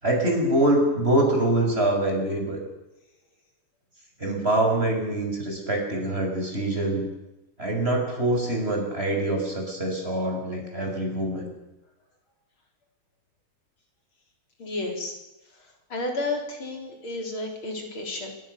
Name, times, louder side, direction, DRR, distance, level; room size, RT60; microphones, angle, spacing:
voice 1, 0.0-2.6 4.2-7.1 7.6-11.5, right 1 dB, 30° right, 1 dB, 7.1 m, -24 dB
voice 2, 14.6-15.2 15.9-18.3, left 2 dB, 80° left, 2 dB, 5.2 m, -31 dB
27.0 x 24.0 x 7.0 m, 0.96 s
omnidirectional pair, 2.2 m